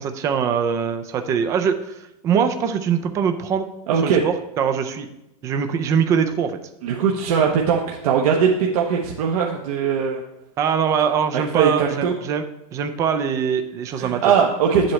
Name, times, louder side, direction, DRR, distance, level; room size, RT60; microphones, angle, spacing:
voice 1, 0.0-2.0 2.2-3.7 4.0-5.1 5.4-6.5 10.6-12.4 12.7-14.2, right 7 dB, 15° right, 8 dB, 0.4 m, -22 dB
voice 2, 3.9-4.2 6.8-10.2 11.3-12.1 13.9-14.9, right 7 dB, 65° right, 0 dB, 1.0 m, -20 dB
9.8 x 7.6 x 3.2 m, 0.90 s
supercardioid pair, 175°, 20 cm